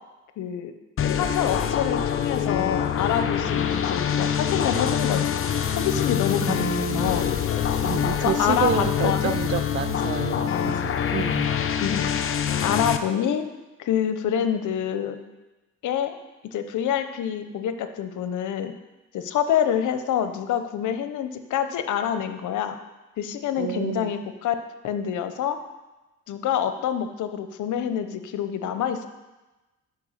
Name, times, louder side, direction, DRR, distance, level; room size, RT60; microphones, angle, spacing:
voice 1, 0.4-0.7 1.1-5.5 5.7-6.6 6.9-7.3 8.2-9.5 11.8-12.1 12.6-13.5 13.8-15.2 15.8-16.1 16.4-18.7 19.1-22.8 23.2-24.5 24.8-25.6 26.3-29.1, left 9 dB, 80° left, 9 dB, 0.8 m, -26 dB
sound 1, 1.0-13.0, left 8 dB, 45° left, 0.8 m, -25 dB
voice 2, 6.4-7.2 7.8-11.5 23.6-24.1, right 10 dB, 40° right, 13 dB, 0.5 m, -29 dB
10.5 x 4.5 x 7.2 m, 1.1 s
cardioid pair, 90°, 30 cm